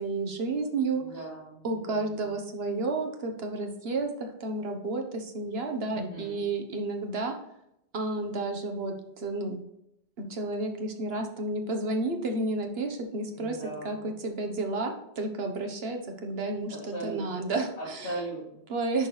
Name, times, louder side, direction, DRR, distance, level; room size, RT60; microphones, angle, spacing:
voice 1, 0.0-1.0 1.6-7.3 7.9-9.6 10.3-13.6 13.8-16.8 17.0-18.1 18.7-19.1, right 2 dB, 70° right, 4 dB, 1.3 m, -31 dB
voice 2, 0.9-2.3 5.9-6.5 13.2-14.1 16.7-17.4 17.8-18.6, right 1 dB, 90° left, -10 dB, 3.0 m, -39 dB
10.5 x 4.6 x 3.2 m, 0.80 s
omnidirectional pair, 1.1 m